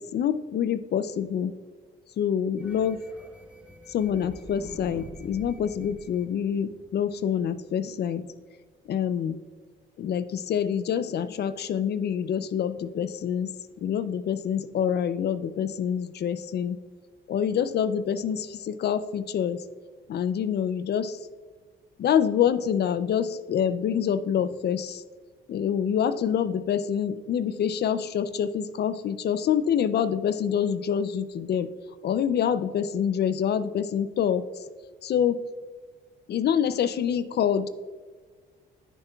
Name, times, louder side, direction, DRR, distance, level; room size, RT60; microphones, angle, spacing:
voice 1, 0.0-1.5 2.2-3.0 3.9-8.3 8.9-9.4 10.0-16.8 17.3-19.6 20.1-21.2 22.0-25.0 25.5-31.7 32.0-34.4 35.0-35.4 36.3-37.7, left 8 dB, 55° left, 14 dB, 0.4 m, -26 dB
sound 1, 2.6-7.4, equal, 5° right, 0.9 m, -47 dB
10.0 x 6.9 x 2.3 m, 1.5 s
cardioid pair, 90°, 20 cm